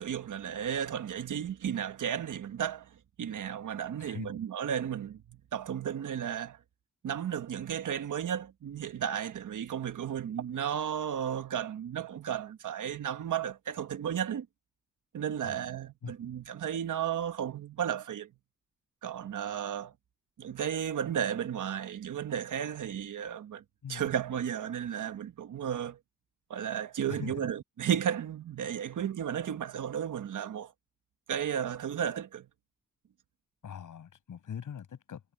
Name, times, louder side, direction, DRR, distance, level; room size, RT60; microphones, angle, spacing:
voice 1, 0.0-2.9 3.2-6.6 7.0-14.5 15.1-18.3 19.0-19.9 20.4-23.6 23.9-26.0 26.5-30.7 31.3-32.5, right 9 dB, 75° right, 1.3 m, -34 dB
voice 2, 4.0-4.3 15.4-15.7 16.0-16.1 23.8-24.1 27.1-27.5 33.6-35.2, left 8 dB, 80° left, 7.1 m, -42 dB
wide cardioid pair, 120°, 31 cm